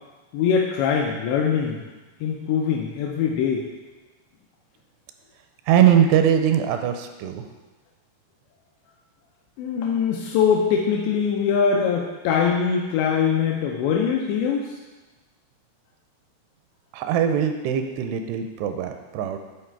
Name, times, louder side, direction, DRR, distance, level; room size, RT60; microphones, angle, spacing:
voice 1, 0.3-1.8 2.2-3.6 9.6-14.8, left 6 dB, 85° left, -1 dB, 2.9 m, -22 dB
voice 2, 5.7-7.5 16.9-19.4, right 9 dB, 85° right, 6 dB, 2.6 m, -21 dB
11.0 x 4.1 x 4.5 m, 1.2 s
omnidirectional pair, 4.9 m